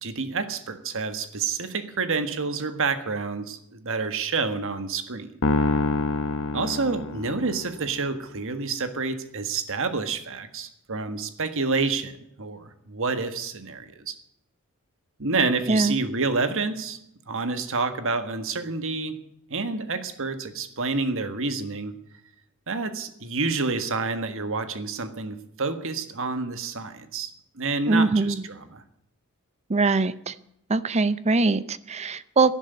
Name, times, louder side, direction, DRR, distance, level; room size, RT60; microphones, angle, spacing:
voice 1, 0.0-5.3 6.5-14.1 15.2-17.0 17.3-19.2 19.5-21.9 22.7-27.3 27.5-28.8, right 4 dB, 60° right, 10 dB, 1.6 m, -28 dB
sound 1, 5.4-7.8, left 2 dB, 60° left, 1.0 m, -26 dB
voice 2, 15.7-16.0 27.9-28.4 29.7-30.3 30.7-32.5, right 3 dB, 30° right, 16 dB, 0.6 m, -22 dB
12.0 x 11.0 x 9.5 m, 0.78 s
head